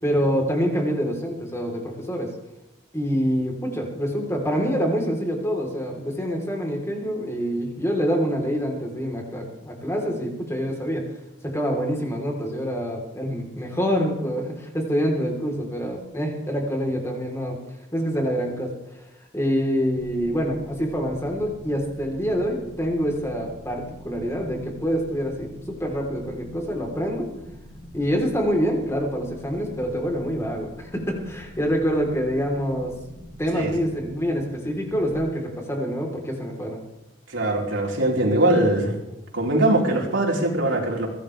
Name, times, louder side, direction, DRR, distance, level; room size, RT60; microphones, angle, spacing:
voice 1, 0.0-2.3 2.9-11.0 11.4-17.6 17.9-18.7 19.3-27.3 27.9-32.9 33.4-36.8, equal, 15° left, 1 dB, 3.7 m, -26 dB
sound 1, 20.0-35.1, equal, 50° right, 2.8 m, -44 dB
voice 2, 37.3-39.0 39.3-41.1, right 1 dB, 75° right, -1 dB, 4.4 m, -21 dB
23.0 x 17.0 x 3.4 m, 0.94 s
head